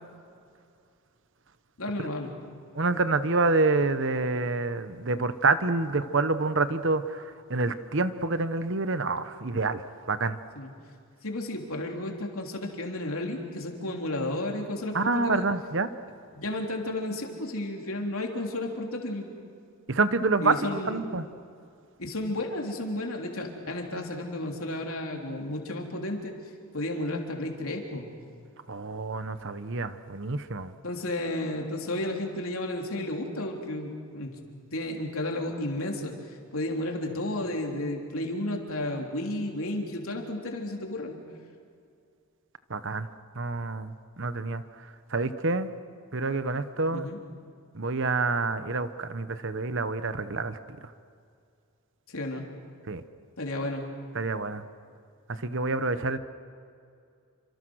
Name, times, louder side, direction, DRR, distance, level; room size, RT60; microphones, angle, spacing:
voice 1, 1.8-2.3 10.5-10.7 11.2-15.5 16.3-19.3 20.4-21.1 22.0-26.3 26.7-28.1 30.8-34.3 34.7-36.1 36.5-41.2 46.9-47.2 52.1-52.5 53.4-53.9, left 1 dB, 70° left, 1 dB, 3.5 m, -32 dB
voice 2, 2.7-7.2 7.5-9.8 10.1-10.4 14.9-15.9 19.9-20.6 20.9-21.2 28.7-30.7 42.7-43.1 43.4-44.6 45.1-45.7 46.1-47.1 47.7-50.6 52.9-53.0 54.1-54.6 55.4-56.2, right 3 dB, 55° right, 12 dB, 1.1 m, -27 dB
29.0 x 26.0 x 6.4 m, 2.4 s
head